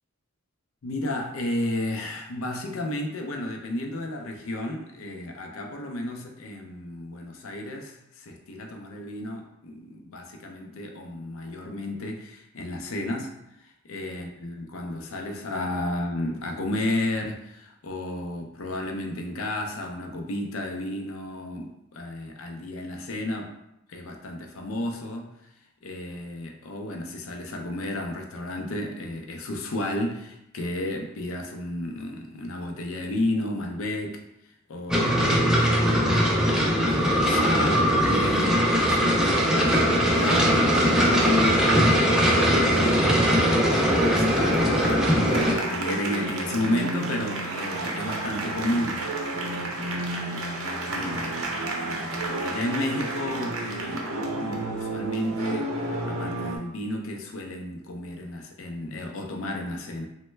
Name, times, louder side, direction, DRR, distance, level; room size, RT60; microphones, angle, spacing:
voice 1, 0.8-23.5 23.9-25.3 25.8-36.4 36.8-49.1 49.5-54.1 54.4-60.1, left 1 dB, 65° left, 3 dB, 0.5 m, -33 dB
sound 1, 34.9-45.6, equal, 5° right, 0.3 m, -21 dB
sound 2, 39.3-56.6, right 2 dB, 70° right, 0.5 m, -31 dB
3.1 x 2.1 x 3.2 m, 0.83 s
head